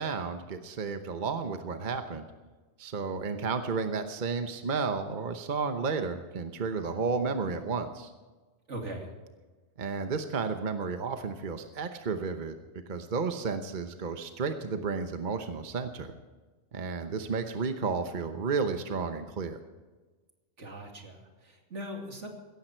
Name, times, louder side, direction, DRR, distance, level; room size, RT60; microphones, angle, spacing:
voice 1, 0.0-2.3 2.8-8.1 9.8-12.6 12.9-16.1 16.7-19.6, right 5 dB, 45° right, 7 dB, 1.1 m, -32 dB
voice 2, 8.7-9.1 20.6-22.3, right 1 dB, 80° right, 2 dB, 2.9 m, -40 dB
16.5 x 14.5 x 4.5 m, 1.3 s
omnidirectional pair, 1.2 m